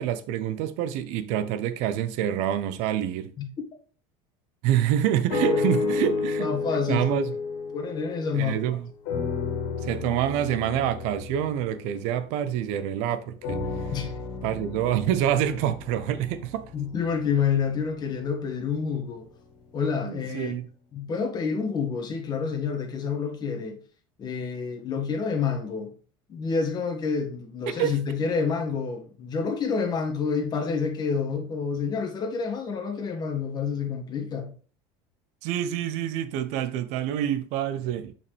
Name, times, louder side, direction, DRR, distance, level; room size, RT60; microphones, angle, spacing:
voice 1, 0.0-3.3 4.6-6.5 6.9-7.3 8.3-8.9 9.8-13.6 14.4-16.7 20.0-20.7 27.7-27.9 35.4-38.1, right 11 dB, 70° right, 0.8 m, -27 dB
sound 1, 5.3-8.7 9.1-12.8 13.4-17.6 18.3-18.4, left 4 dB, 80° left, 2.1 m, -32 dB
voice 2, 6.4-7.2 7.7-8.6 13.9-14.1 16.7-19.3 19.7-20.5 20.9-23.8 24.2-25.9 26.3-34.5, left 5 dB, 35° left, 1.8 m, -28 dB
7.0 x 5.6 x 3.4 m
supercardioid pair, 125°, 12 cm